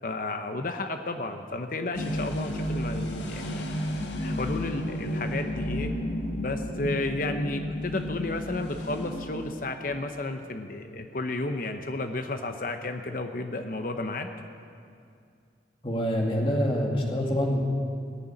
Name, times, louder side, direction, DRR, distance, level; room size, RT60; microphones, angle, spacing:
voice 1, 0.0-3.7 4.2-5.9 6.4-14.3, left 2 dB, 50° left, 6 dB, 0.9 m, -32 dB
sound 1, 1.9-9.8, equal, 80° left, 1.5 m, -32 dB
voice 2, 15.8-17.6, equal, 30° left, -1 dB, 2.3 m, -26 dB
19.5 x 6.9 x 9.7 m, 2.4 s
head